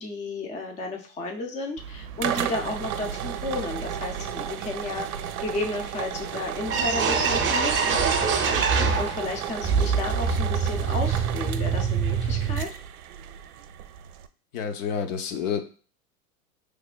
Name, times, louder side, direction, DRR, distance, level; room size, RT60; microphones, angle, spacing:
voice 1, 0.0-8.1 9.0-12.7, left 2 dB, 15° left, 2 dB, 0.5 m, -33 dB
sound 1, 1.8-14.3, right 9 dB, 75° right, 0.6 m, -34 dB
sound 2, 6.2-6.3 6.6-9.3 9.6-12.6, right 5 dB, 25° right, 0.7 m, -24 dB
voice 2, 14.5-15.6, left 7 dB, 60° left, 6 dB, 0.8 m, -29 dB
4.7 x 3.4 x 2.2 m, 0.40 s
hypercardioid pair, 105°, 44 cm